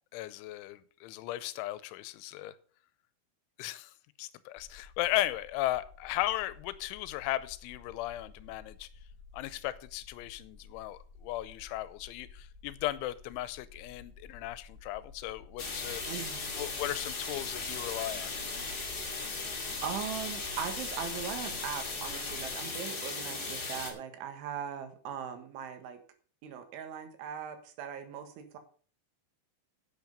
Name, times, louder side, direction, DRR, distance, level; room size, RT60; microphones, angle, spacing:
voice 1, 0.1-2.5 3.6-3.9 4.2-8.9 9.3-16.0 16.6-18.3, left 15 dB, 90° left, 16 dB, 3.1 m, -36 dB
sound 1, 4.6-22.5, left 4 dB, 15° right, 4.9 m, -53 dB
sound 2, 15.6-23.9, left 3 dB, 35° left, 1.8 m, -37 dB
voice 2, 16.1-16.5 19.8-26.0 26.4-28.6, right 8 dB, 85° right, 7 dB, 3.9 m, -39 dB
10.5 x 8.9 x 5.4 m, 0.42 s
omnidirectional pair, 5.4 m